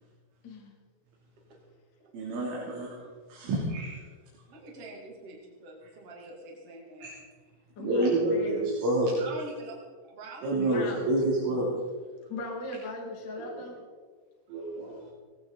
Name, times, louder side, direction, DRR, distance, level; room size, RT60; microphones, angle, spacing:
voice 1, 0.4-0.7 7.8-8.7 10.6-11.1 12.3-13.8, left 2 dB, 40° left, -1 dB, 1.6 m, -37 dB
voice 2, 2.1-3.0 3.3-4.0 7.0-7.1 7.8-9.1 10.4-11.7 13.4-13.7 14.5-15.0, right 1 dB, 70° right, -5 dB, 5.7 m, -28 dB
voice 3, 4.5-7.1 9.2-9.8 10.1-10.7 11.1-11.2, right 2 dB, 35° right, -2 dB, 3.1 m, -45 dB
20.5 x 16.5 x 4.0 m, 1.5 s
omnidirectional pair, 5.8 m